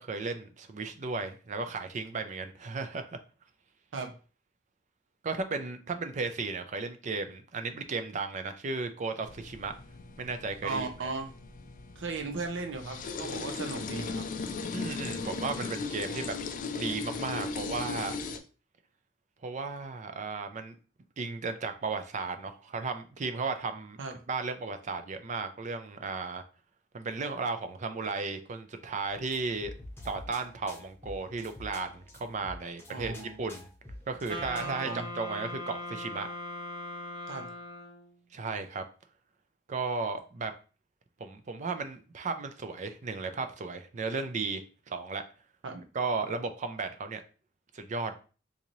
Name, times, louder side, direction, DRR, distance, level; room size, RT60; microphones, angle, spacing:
voice 1, 0.0-3.2 5.2-9.7 10.2-10.9 14.7-16.4 16.7-18.2 19.4-20.8 21.2-24.0 24.3-26.4 26.9-29.7 30.0-33.1 33.4-33.7 34.1-36.3 38.3-38.8 39.7-40.5 41.2-45.2 45.9-47.2 47.7-48.2, right 4 dB, 40° right, 9 dB, 0.4 m, -35 dB
sound 1, 9.2-18.4, left 4 dB, 45° left, 0.4 m, -37 dB
voice 2, 10.6-11.3 12.0-14.3 24.0-24.2 32.9-33.5 34.6-35.0 37.3-37.5 45.6-45.8, right 3 dB, 80° right, 4 dB, 0.6 m, -36 dB
sound 2, 29.0-34.8, left 1 dB, 15° left, 0.8 m, -48 dB
Wind instrument woodwind instrument, 34.3-38.1, left 1 dB, 25° right, 0.8 m, -40 dB
3.8 x 2.7 x 3.0 m, 0.36 s
head